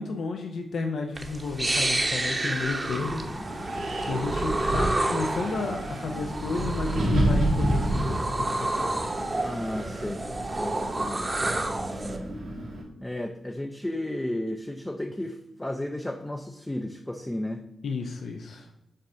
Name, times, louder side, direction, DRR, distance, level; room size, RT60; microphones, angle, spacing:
voice 1, 0.0-3.2 4.0-9.1 17.8-18.7, left 4 dB, 75° left, 3 dB, 0.6 m, -32 dB
sound 1, 1.1-12.2, right 2 dB, 25° right, 0.9 m, -30 dB
Wind, 2.9-12.8, right 1 dB, 85° right, 1.8 m, -30 dB
voice 2, 9.4-10.2 10.6-11.4 11.9-12.4 13.0-17.6, left 1 dB, 10° left, 4 dB, 0.5 m, -33 dB
7.5 x 2.6 x 5.5 m, 0.84 s
cardioid pair, 80°, 0 cm